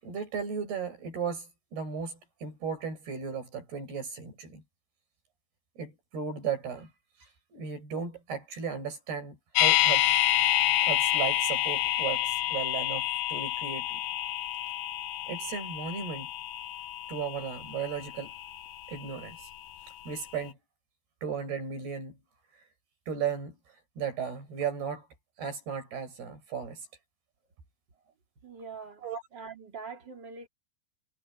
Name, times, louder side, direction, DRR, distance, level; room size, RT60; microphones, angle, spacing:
voice 1, 0.0-4.6 5.8-6.9 7.2-10.1 10.9-14.0 15.3-16.3 17.1-18.3 18.9-19.5 20.1-20.6 21.2-22.2 23.1-23.6 24.0-25.1 25.4-26.9 29.0-29.2, right 6 dB, 65° right, 9.3 m, -35 dB
sound 1, 9.5-19.6 19.9-20.0, left 13 dB, 70° left, 2.8 m, -28 dB
voice 2, 28.4-30.5, right 5 dB, 25° right, 3.4 m, -44 dB
omnidirectional pair, 4.9 m